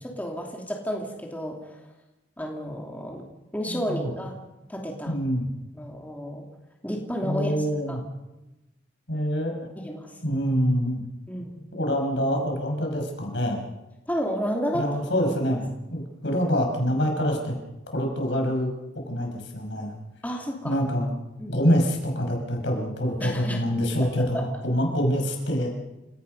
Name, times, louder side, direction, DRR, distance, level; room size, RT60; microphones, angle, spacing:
voice 1, 0.0-1.8 2.4-3.2 3.5-4.3 4.7-5.2 5.7-6.4 6.8-7.5 7.9-8.0 9.8-10.2 11.3-11.6 14.1-14.8 20.2-20.8 21.4-21.7 23.2-23.6 24.0-24.1 24.3-24.4, equal, 10° left, 0 dB, 2.8 m, -31 dB
voice 2, 3.7-4.1 5.1-5.5 7.2-8.0 9.1-9.7 10.2-11.0 11.7-13.6 14.7-17.6 17.9-18.7 19.1-19.9 20.6-21.2 21.5-25.7, equal, 70° left, 2 dB, 5.7 m, -25 dB
29.5 x 17.5 x 5.5 m, 0.98 s
head